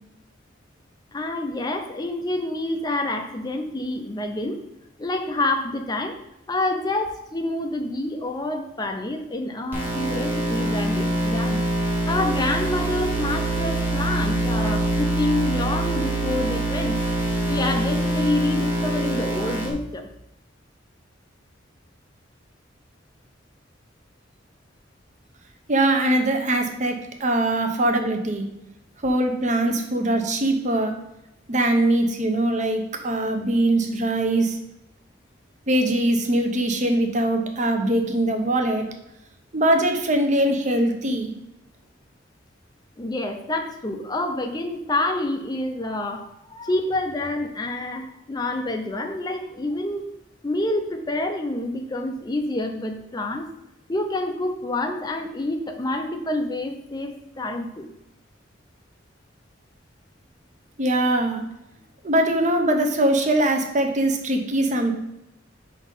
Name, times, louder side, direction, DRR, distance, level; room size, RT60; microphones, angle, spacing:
voice 1, 1.1-4.6 5.0-6.2 6.5-11.6 12.1-17.0 17.5-20.1 43.0-50.1 50.4-53.5 53.9-57.9, left 2 dB, 20° left, 4 dB, 0.5 m, -27 dB
sound 1, 9.7-19.7, right 1 dB, 10° right, 1.3 m, -24 dB
voice 2, 25.7-28.5 29.0-30.9 31.5-34.6 35.7-38.8 39.5-41.3 60.8-61.4 62.0-64.9, right 1 dB, 40° right, 4 dB, 0.8 m, -22 dB
5.2 x 4.0 x 5.4 m, 0.87 s
head